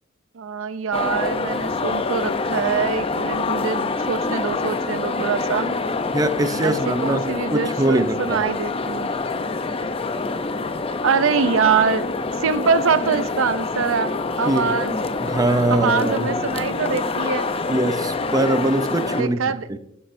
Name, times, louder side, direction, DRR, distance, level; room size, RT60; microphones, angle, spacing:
voice 1, 0.3-5.8 6.6-9.1 11.0-12.2 12.4-15.0 15.7-17.5 19.2-19.7, right 6 dB, 80° right, 0.5 m, -24 dB
sound 1, 0.9-19.2, left 3 dB, 30° left, 0.5 m, -26 dB
voice 2, 6.1-8.4 14.5-14.8 15.2-16.4 17.7-19.8, right 1 dB, 20° right, 0.5 m, -22 dB
11.5 x 9.7 x 2.6 m
head